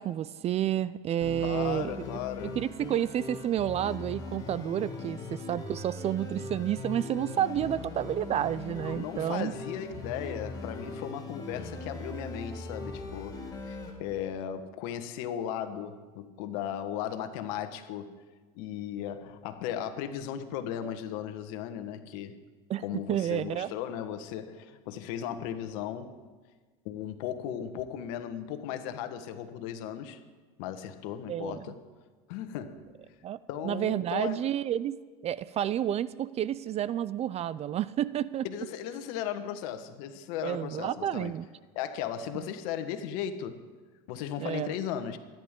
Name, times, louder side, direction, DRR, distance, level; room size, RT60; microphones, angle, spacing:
voice 1, 0.0-1.9 2.4-9.5 22.7-22.8 23.1-23.7 31.3-31.6 33.2-33.4 33.6-35.0 35.2-38.5 40.4-41.4 44.4-44.7, right 11 dB, 35° right, 18 dB, 0.4 m, -30 dB
sound 1, 1.2-13.9, left 3 dB, 20° left, 3.8 m, -40 dB
voice 2, 1.4-2.6 8.8-18.2 18.5-22.4 22.8-26.2 26.8-30.2 30.6-31.8 32.3-33.1 33.5-34.5 38.4-41.3 41.7-43.7 44.1-45.2, left 9 dB, 70° left, 9 dB, 1.3 m, -36 dB
24.0 x 10.5 x 3.7 m, 1.4 s
supercardioid pair, 100°, 19 cm